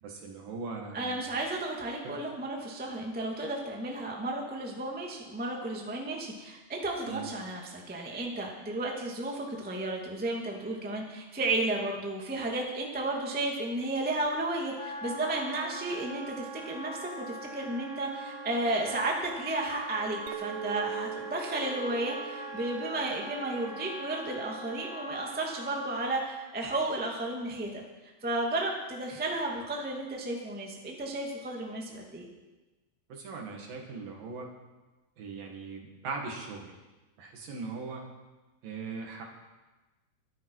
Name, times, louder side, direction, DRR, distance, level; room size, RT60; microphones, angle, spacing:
voice 1, 0.0-1.3 2.0-2.2 7.1-7.3 33.1-34.5 35.2-36.8 37.2-38.0 38.6-39.2, right 4 dB, 60° right, 1 dB, 3.5 m, -40 dB
voice 2, 0.9-27.8 28.2-32.3, right 2 dB, 5° right, -1 dB, 0.7 m, -33 dB
Wind instrument woodwind instrument, 14.8-26.1, right 1 dB, 40° right, 0.6 m, -42 dB
Chink clink, 20.3-24.8, right 10 dB, 80° right, 2.7 m, -42 dB
23.5 x 11.0 x 4.8 m, 1.2 s
omnidirectional pair, 4.8 m